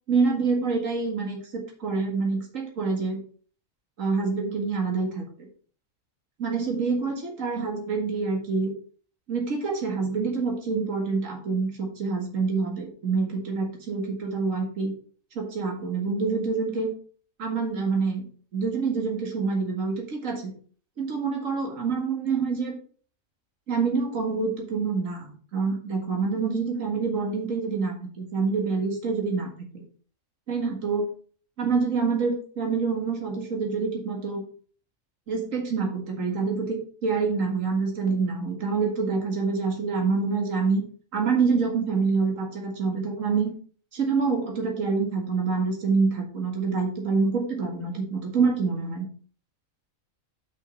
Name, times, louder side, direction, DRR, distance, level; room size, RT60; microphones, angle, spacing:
voice 1, 0.1-3.2 4.0-5.5 6.4-8.7 9.3-14.9 15.4-16.9 17.4-18.3 18.5-20.5 21.0-22.7 23.7-29.8 30.5-31.1 31.6-34.4 35.3-40.8 41.1-43.5 43.9-49.1, right 4 dB, 70° right, 1 dB, 2.2 m, -26 dB
5.9 x 5.8 x 5.2 m, 0.43 s
omnidirectional pair, 1.4 m